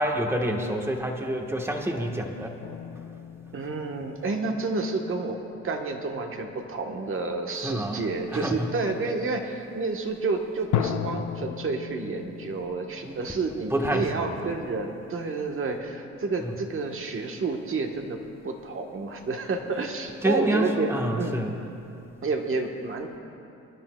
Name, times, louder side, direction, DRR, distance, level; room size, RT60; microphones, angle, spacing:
voice 1, 0.0-2.5 7.6-8.0 8.3-8.7 13.0-13.2 13.7-14.3 16.4-16.5 20.2-21.5, equal, 10° right, 2 dB, 1.2 m, -27 dB
sound 1, 2.6-5.6 6.1-6.5 10.7-15.1, left 9 dB, 85° left, 0.7 m, -35 dB
voice 2, 3.5-5.4 5.6-18.2 18.4-21.4 22.2-23.2, right 3 dB, 45° right, 3 dB, 1.2 m, -30 dB
27.5 x 10.5 x 2.3 m, 2.7 s
cardioid pair, 90°, 30 cm